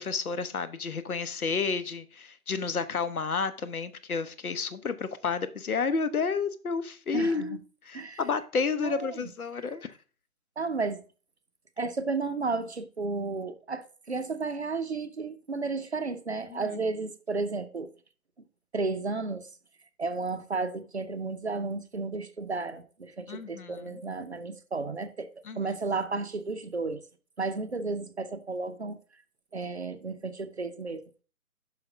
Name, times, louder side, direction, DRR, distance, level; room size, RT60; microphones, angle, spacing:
voice 1, 0.0-7.6 7.9-9.9 16.5-16.8 23.3-24.0 25.4-25.7, left 5 dB, 70° left, 0.9 m, -31 dB
voice 2, 7.1-7.6 7.9-8.2 8.8-9.2 10.6-11.0 11.8-17.9 18.7-19.5 20.0-25.3 25.6-27.0 27.4-29.0 29.5-31.0, right 3 dB, 45° right, 0.6 m, -33 dB
5.8 x 5.0 x 4.9 m
figure-of-eight pair, 165°, 46 cm